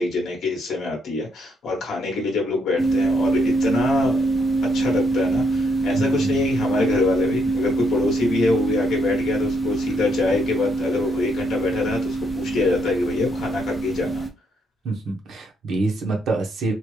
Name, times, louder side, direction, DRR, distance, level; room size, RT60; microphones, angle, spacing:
voice 1, 0.0-4.2 4.7-14.2, left 3 dB, 55° left, 1.1 m, -25 dB
sound 1, 2.8-14.3, right 3 dB, ahead, 0.5 m, -24 dB
voice 2, 6.0-6.3 14.8-16.7, right 3 dB, 50° right, 0.9 m, -26 dB
3.0 x 2.3 x 3.2 m
cardioid pair, 175°, 0 cm